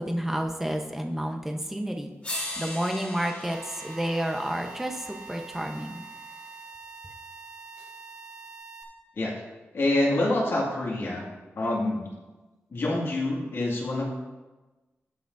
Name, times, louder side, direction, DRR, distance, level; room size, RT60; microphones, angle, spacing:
voice 1, 0.0-2.1 2.6-6.0, right 1 dB, 5° right, 3 dB, 0.9 m, -30 dB
sound 1, 1.6-1.7 2.2-6.4 7.8-7.9, left 1 dB, 30° left, 3.2 m, -40 dB
sound 2, 3.5-8.8, right 4 dB, 30° right, 1.3 m, -45 dB
voice 2, 9.7-11.3 11.6-12.1 12.7-14.1, left 2 dB, 65° left, -3 dB, 2.1 m, -26 dB
17.0 x 5.8 x 2.6 m, 1.2 s
wide cardioid pair, 135°, 5 cm